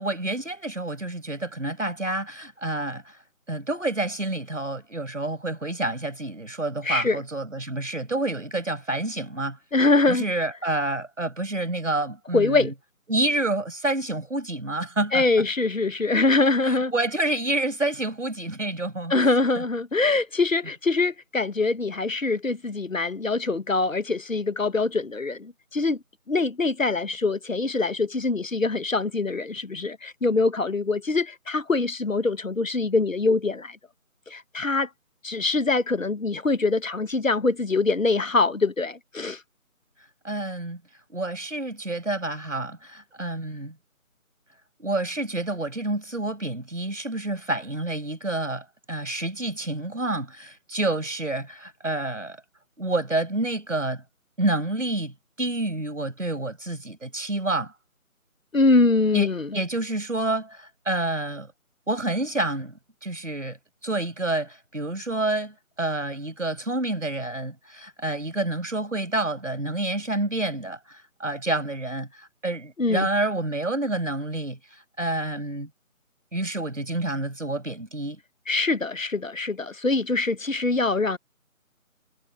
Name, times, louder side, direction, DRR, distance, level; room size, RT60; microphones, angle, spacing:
voice 1, 0.0-3.2 3.5-9.6 10.1-12.7 13.1-15.2 16.6-19.3 19.6-19.7 40.2-40.8 41.1-43.7 44.8-52.4 52.8-54.0 54.4-57.7 59.1-61.5 61.9-63.6 63.8-75.7 76.3-78.2, right 2 dB, 60° right, 5.7 m, -28 dB
voice 2, 6.8-7.2 9.7-10.2 12.3-12.7 15.1-16.9 19.1-26.0 26.3-33.8 34.3-34.9 35.2-39.4 58.5-59.5 72.8-73.1 78.5-81.2, left 3 dB, 65° left, 1.1 m, -23 dB
figure-of-eight pair, 165°, 42 cm